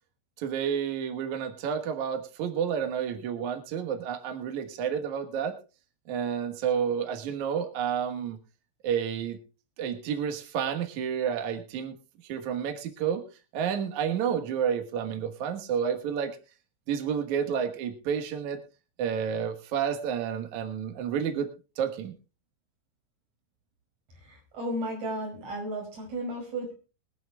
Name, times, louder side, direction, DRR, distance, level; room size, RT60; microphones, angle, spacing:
voice 1, 0.4-5.6 6.1-8.4 8.8-9.4 9.8-11.9 12.3-13.2 13.5-16.4 16.9-18.6 19.0-21.5 21.8-22.2, right 8 dB, 80° right, 6 dB, 1.7 m, -30 dB
voice 2, 24.5-26.7, right 1 dB, 40° right, 1 dB, 6.1 m, -33 dB
22.5 x 11.0 x 2.3 m, 0.32 s
omnidirectional pair, 5.6 m